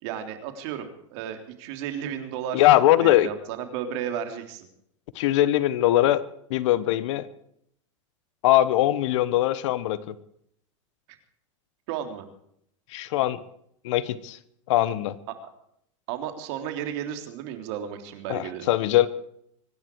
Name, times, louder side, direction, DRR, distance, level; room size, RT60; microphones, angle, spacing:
voice 1, 0.0-2.6 3.0-4.7 11.9-12.2 15.3-15.4 16.1-18.7, right 9 dB, 60° right, 6 dB, 3.5 m, -33 dB
voice 2, 2.5-3.3 5.1-6.2 6.5-7.3 8.4-10.1 12.9-13.4 13.8-14.4 14.7-15.2 18.3-19.1, left 14 dB, 65° left, 16 dB, 1.4 m, -21 dB
25.0 x 11.0 x 4.8 m, 0.71 s
hypercardioid pair, 115°, 16 cm